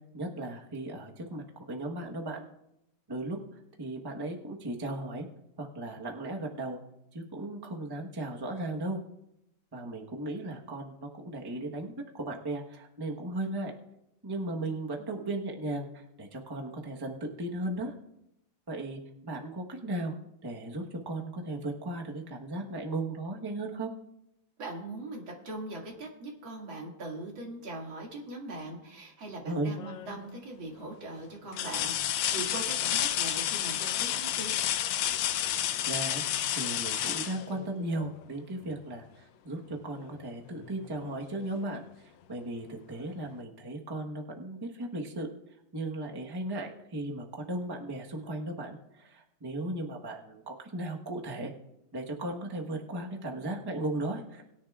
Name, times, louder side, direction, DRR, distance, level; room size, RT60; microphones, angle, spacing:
voice 1, 0.1-2.5 3.1-3.4 3.8-5.3 5.6-6.8 7.1-9.0 9.7-13.7 14.2-17.9 18.7-20.2 20.4-23.9 29.4-29.7 35.8-36.2 36.5-45.3 45.7-51.5 51.9-54.4, right 2 dB, 15° right, 1 dB, 0.8 m, -36 dB
voice 2, 24.6-34.5, right 2 dB, 80° right, -1 dB, 3.0 m, -41 dB
sound 1, 29.8-30.3 30.8-30.9 31.5-38.2 40.0-40.1 40.6-41.6 42.9-43.0, left 11 dB, 75° left, 1.3 m, -31 dB
20.5 x 10.5 x 2.4 m, 0.84 s
omnidirectional pair, 2.1 m